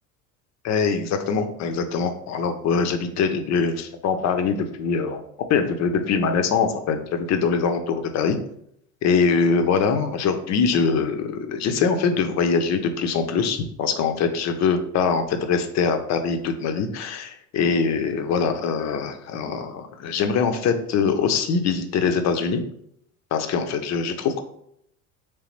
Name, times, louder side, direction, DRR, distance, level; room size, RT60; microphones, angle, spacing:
voice 1, 0.6-5.2 5.5-8.4 9.0-22.6 23.3-24.4, left 5 dB, 35° left, 7 dB, 0.5 m, -23 dB
3.3 x 3.3 x 3.0 m, 0.72 s
hypercardioid pair, 75°, 47 cm